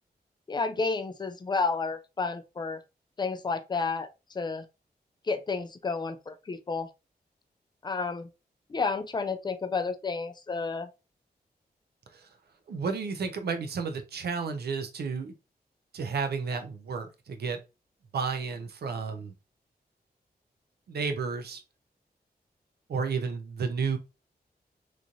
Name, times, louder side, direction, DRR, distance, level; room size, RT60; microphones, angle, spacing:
voice 1, 0.5-2.8 3.2-4.7 5.3-6.9 7.8-8.3 8.7-10.9, left 4 dB, 25° left, 0.4 m, -31 dB
voice 2, 12.7-15.3 15.9-17.6 18.1-19.3 20.9-21.6 22.9-24.0, right 5 dB, 75° right, 0.6 m, -32 dB
3.0 x 2.6 x 2.4 m
wide cardioid pair, 95°, 17 cm